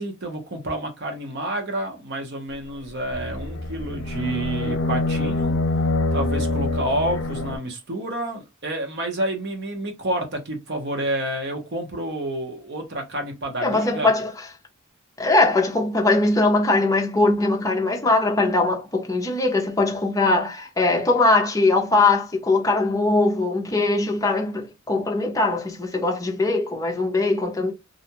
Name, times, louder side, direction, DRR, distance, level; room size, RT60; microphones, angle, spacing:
voice 1, 0.0-5.5 6.1-14.1, right 1 dB, 55° right, 0.8 m, -29 dB
sound 1, 3.1-7.6, left 2 dB, 65° left, 0.6 m, -25 dB
voice 2, 13.6-14.3 15.2-27.7, left 2 dB, 15° left, 0.5 m, -21 dB
2.5 x 2.2 x 2.8 m
head